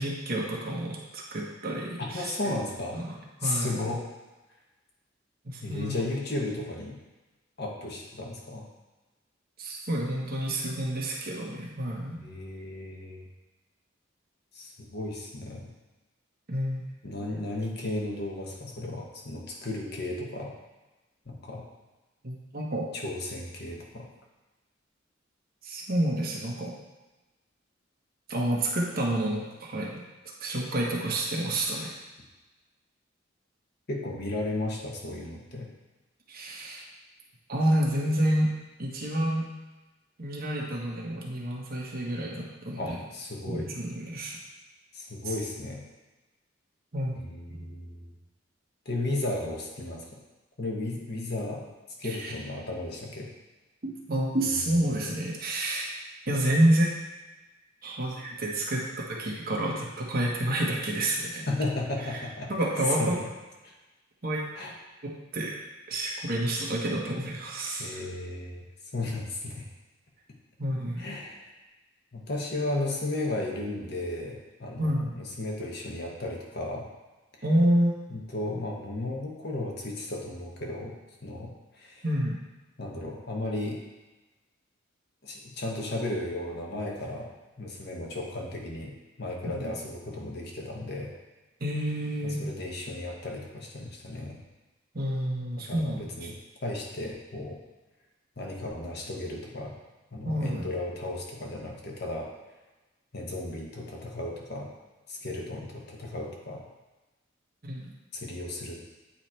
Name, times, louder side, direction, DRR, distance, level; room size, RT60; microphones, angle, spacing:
voice 1, 0.0-2.3 2.9-3.1 3.4-3.8 5.4-6.0 9.6-12.2 16.5-16.8 22.2-22.9 25.6-26.7 28.3-30.0 30.4-32.0 36.3-36.8 37.5-38.5 38.8-39.5 40.2-43.0 43.5-44.4 46.9-47.2 47.5-47.6 52.0-52.3 53.8-55.9 56.3-56.9 57.8-58.8 59.1-61.5 62.5-63.2 64.2-64.4 65.0-65.6 65.9-68.0 70.6-71.1 74.8-75.1 77.4-77.9 82.0-82.4 89.5-89.7 91.6-92.5 94.9-96.3 100.2-100.7 107.6-107.9, right 1 dB, 50° right, -2 dB, 1.2 m, -29 dB
voice 2, 2.1-3.0 3.4-4.0 5.6-7.0 7.6-8.6 12.2-13.3 14.5-15.7 17.0-20.5 21.3-21.6 22.9-24.1 33.9-35.7 42.8-43.7 44.9-45.8 47.1-48.1 48.8-50.1 50.6-51.6 52.0-53.3 54.5-55.2 61.5-62.5 63.0-63.3 63.6-63.7 64.5-64.7 67.8-68.6 68.9-69.7 71.0-71.4 72.1-76.9 78.1-80.9 81.2-82.0 82.8-83.8 85.2-87.3 87.6-88.9 89.2-91.1 92.2-94.4 95.7-96.3 96.6-97.6 98.4-99.7 100.1-102.3 103.1-104.7 105.1-106.6 108.1-108.8, left 2 dB, 55° left, -1 dB, 1.1 m, -34 dB
8.8 x 3.2 x 4.4 m, 1.1 s
head